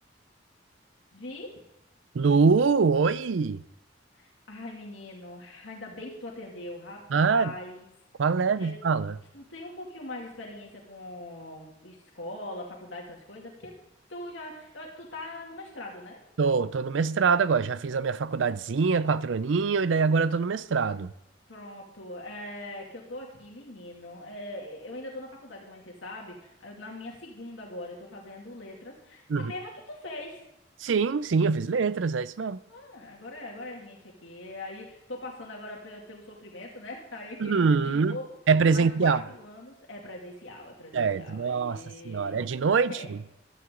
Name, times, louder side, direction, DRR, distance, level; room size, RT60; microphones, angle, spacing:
voice 1, 1.1-1.6 4.1-7.9 8.6-8.7 9.3-13.7 14.1-16.2 21.5-30.4 32.7-38.3 38.7-42.4 42.9-43.1, left 1 dB, 80° left, 2.4 m, -42 dB
voice 2, 2.1-3.6 7.1-7.5 8.2-9.1 16.4-21.1 29.3-29.5 30.8-32.6 37.4-38.2 38.5-39.2 40.9-43.2, right 5 dB, 85° right, 0.5 m, -24 dB
15.0 x 12.5 x 3.8 m
head